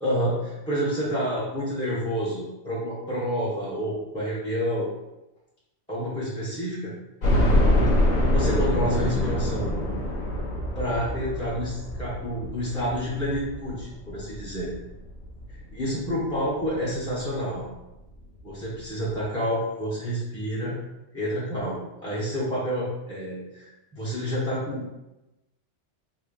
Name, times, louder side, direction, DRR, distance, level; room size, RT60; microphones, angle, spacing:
voice 1, 0.0-4.9 5.9-6.9 8.3-9.7 10.7-14.7 15.7-17.6 18.4-20.8 21.1-24.9, equal, 5° left, -9 dB, 0.6 m, -29 dB
sound 1, 7.2-16.1 16.6-16.7 17.1-17.2 18.4-18.5 18.7-18.8, left 1 dB, 45° left, 0.7 m, -25 dB
3.6 x 2.1 x 3.6 m, 0.98 s
omnidirectional pair, 1.3 m